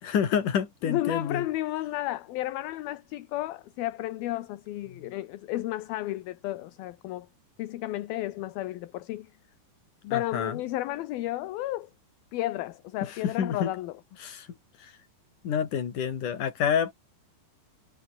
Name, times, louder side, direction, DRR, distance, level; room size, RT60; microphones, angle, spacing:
voice 1, 0.0-1.5 4.9-5.1 10.1-10.6 13.0-13.7 14.2-14.5 14.8-14.9 15.4-16.9, left 8 dB, 50° left, 4.1 m, -28 dB
voice 2, 0.8-7.3 7.6-9.3 10.0-11.9 12.3-13.9, left 15 dB, 70° left, 2.7 m, -32 dB
omnidirectional pair, 5.0 m